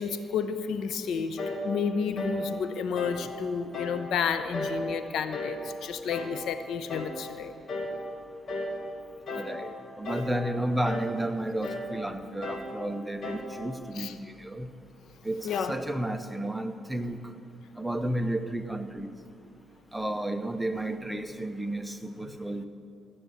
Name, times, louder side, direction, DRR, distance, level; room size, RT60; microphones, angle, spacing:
voice 1, 0.0-7.5 13.9-14.1 15.4-15.8, left 6 dB, 75° left, 10 dB, 0.7 m, -31 dB
sound 1, 1.4-1.7 2.2-2.4 3.0-3.2 3.7-4.0 4.5-4.8 5.3-5.6 6.1-6.4 6.9-7.2 7.7-8.0 8.5-8.8 9.3-9.6 10.0-10.4 10.8-11.1 11.6-11.9 12.4-12.7 13.2-13.5, left 2 dB, 50° left, 2.2 m, -35 dB
voice 2, 9.3-14.7 15.2-17.2 17.8-19.1 19.9-22.7, right 1 dB, 5° right, 8 dB, 0.8 m, -32 dB
16.0 x 6.9 x 8.6 m, 2.5 s
cardioid pair, 90°, 0 cm